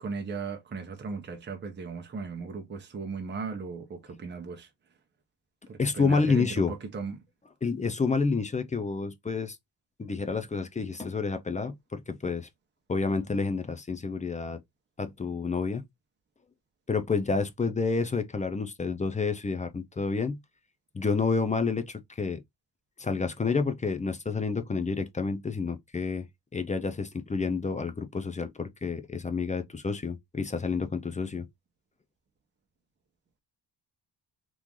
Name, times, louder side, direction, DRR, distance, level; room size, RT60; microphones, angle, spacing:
voice 1, 0.0-4.7 5.7-7.2, right 4 dB, 25° right, 0.7 m, -37 dB
voice 2, 5.8-6.7 7.6-9.6 10.0-12.5 12.9-14.6 15.0-15.8 16.9-20.4 20.9-22.4 23.0-26.3 26.5-31.5, left 4 dB, 20° left, 0.3 m, -29 dB
3.0 x 2.4 x 3.6 m
wide cardioid pair, 170°, 43 cm